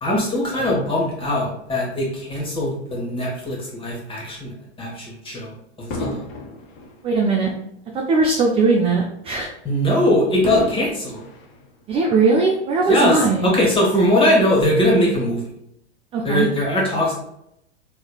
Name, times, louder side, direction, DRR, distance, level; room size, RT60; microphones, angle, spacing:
voice 1, 0.0-4.5 4.8-5.5 5.8-6.2 9.6-11.2 12.9-15.4 16.2-17.2, left 1 dB, 15° left, -3 dB, 1.3 m, -20 dB
Fireworks, 0.6-3.2 3.8-4.0 5.9-8.4 8.8-8.9 10.4-12.3 13.0-13.1, left 2 dB, 35° left, 0.8 m, -36 dB
voice 2, 7.0-7.5 8.1-9.5 11.9-13.5 16.1-16.5, right 4 dB, 20° right, -1 dB, 0.3 m, -19 dB
3.8 x 3.1 x 2.3 m, 0.79 s
hypercardioid pair, 110°, 34 cm